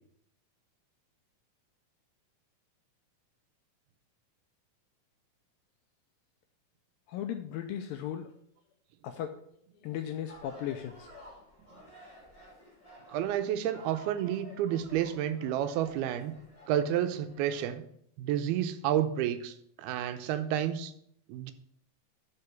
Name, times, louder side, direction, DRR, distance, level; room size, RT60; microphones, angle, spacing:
voice 1, 7.1-8.4 9.0-9.4 9.8-11.2, left 10 dB, 85° left, 7 dB, 2.0 m, -37 dB
sound 1, 10.3-17.7, left 1 dB, 20° left, 0.9 m, -53 dB
voice 2, 13.1-16.4 16.7-17.8 18.2-20.9 21.3-21.5, right 10 dB, 80° right, 10 dB, 2.5 m, -30 dB
6.6 x 5.6 x 7.0 m, 0.68 s
omnidirectional pair, 4.5 m